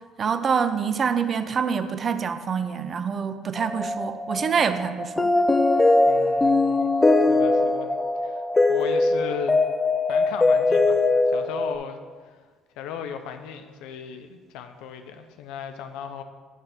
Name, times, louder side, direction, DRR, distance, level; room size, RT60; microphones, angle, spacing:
voice 1, 0.2-5.3, right 6 dB, 40° right, 10 dB, 0.5 m, -26 dB
sound 1, 3.6-11.7, left 2 dB, 15° left, 0.5 m, -21 dB
voice 2, 6.1-6.9 7.3-7.9 8.2-8.4 8.7-9.6 10.1-12.0 12.3-12.4 12.8-16.2, left 8 dB, 85° left, 7 dB, 0.5 m, -37 dB
8.6 x 3.3 x 5.8 m, 1.5 s
cardioid pair, 115°, 0 cm